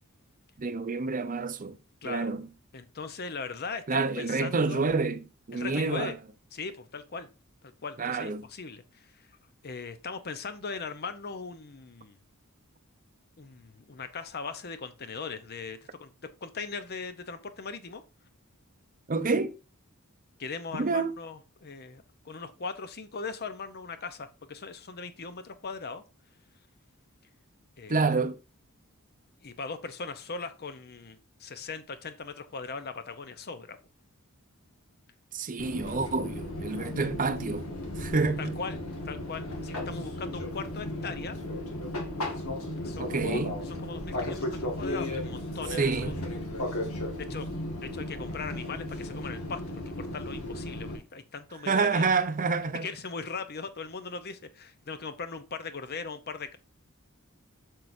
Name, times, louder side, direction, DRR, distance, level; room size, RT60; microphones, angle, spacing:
voice 1, 0.6-1.8 2.0-2.5 3.9-6.1 8.0-8.4 19.1-19.5 20.7-21.1 27.9-28.4 35.3-37.7 38.0-38.6 43.0-43.6 45.8-46.3 51.7-52.9, right 4 dB, 40° right, 0.6 m, -28 dB
voice 2, 2.7-4.8 5.5-6.1 6.5-7.3 7.6-9.1 9.6-12.2 13.4-18.0 20.4-26.0 27.8-28.1 29.4-33.8 38.4-38.8 39.0-41.4 42.8-46.1 47.2-47.5 47.8-52.1 52.8-56.6, left 4 dB, 45° left, 0.8 m, -39 dB
Fixed-wing aircraft airplane, 35.6-51.0, left 1 dB, 75° left, 1.9 m, -35 dB
7.5 x 6.3 x 2.7 m
head